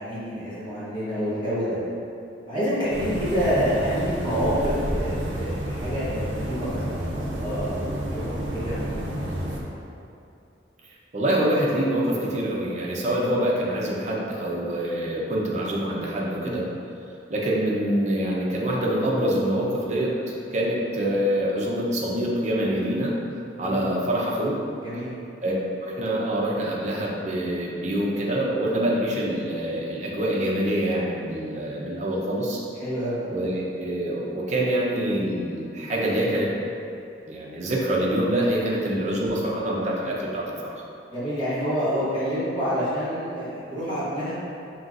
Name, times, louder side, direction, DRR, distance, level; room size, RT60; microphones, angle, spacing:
voice 1, 0.0-1.8 2.5-9.3 16.4-16.6 23.6-23.9 24.8-25.1 32.8-33.2 38.7-39.0 41.1-44.4, equal, 25° left, -12 dB, 1.2 m, -28 dB
sound 1, 2.9-9.6, equal, 80° right, 0.6 m, -30 dB
voice 2, 11.1-16.7 17.3-20.1 20.5-23.1 23.6-24.6 25.4-25.5 25.8-32.6 33.3-36.5 37.3-40.7 41.9-42.0, right 1 dB, 40° right, -4 dB, 0.6 m, -25 dB
5.6 x 3.0 x 2.5 m, 2.7 s
head